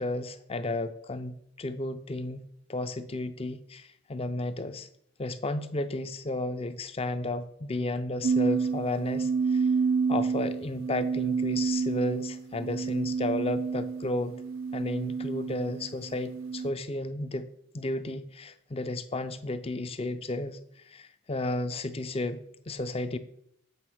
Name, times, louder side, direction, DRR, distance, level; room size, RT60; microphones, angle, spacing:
voice 1, 0.0-2.4 2.7-4.9 5.2-9.7 10.1-14.4 14.7-17.5 17.7-23.2, left 2 dB, 25° left, 11 dB, 0.5 m, -33 dB
sound 1, 8.2-16.7, right 5 dB, 75° right, 0.5 m, -29 dB
8.0 x 5.1 x 5.9 m, 0.71 s
head